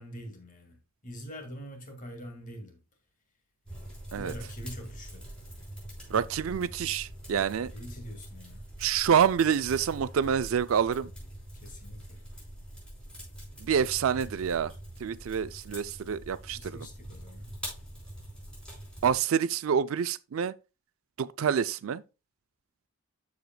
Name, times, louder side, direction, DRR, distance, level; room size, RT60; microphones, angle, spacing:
voice 1, 0.0-2.8 4.1-5.2 7.7-8.6 11.5-12.2 16.5-17.6, equal, 40° left, 2.0 m, -44 dB
sound 1, 3.7-19.2, right 1 dB, 5° left, 4.4 m, -44 dB
voice 2, 6.1-7.7 8.8-11.1 13.6-14.7 15.0-16.8 19.0-20.5 21.2-22.0, right 7 dB, 65° right, 0.4 m, -27 dB
13.0 x 4.9 x 2.2 m
head